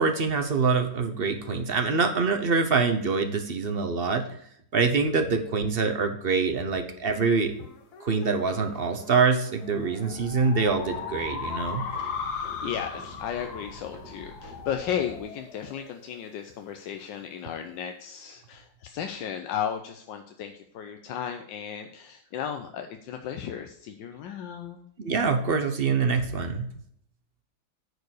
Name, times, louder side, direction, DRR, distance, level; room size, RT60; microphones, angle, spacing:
voice 1, 0.0-4.2 4.7-7.5 8.0-11.8 25.0-26.7, right 4 dB, 40° right, 6 dB, 0.9 m, -25 dB
sound 1, 7.6-16.4, left 5 dB, 60° left, 1.5 m, -38 dB
sound 2, 10.1-15.2, right 1 dB, 90° right, 2.5 m, -46 dB
voice 2, 12.0-24.8, left 9 dB, 80° left, 6 dB, 1.4 m, -35 dB
9.4 x 4.7 x 6.4 m, 0.67 s
omnidirectional pair, 2.0 m